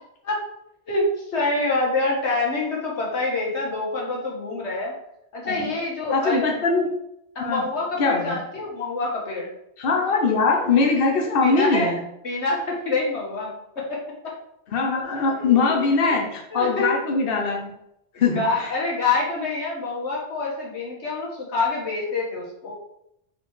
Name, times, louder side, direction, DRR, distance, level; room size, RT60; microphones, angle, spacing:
voice 1, 1.3-4.9 5.3-6.6 7.4-9.5 11.4-11.9 12.2-14.4 15.4-15.8 16.1-16.2 16.5-16.9 18.1-22.7, left 3 dB, 85° left, -3 dB, 1.9 m, -26 dB
voice 2, 6.1-6.9 7.4-7.6 8.0-8.4 9.8-12.0 14.7-17.7 18.2-18.7, left 4 dB, 60° left, 0 dB, 1.0 m, -21 dB
5.1 x 4.2 x 4.8 m, 0.79 s
omnidirectional pair, 1.1 m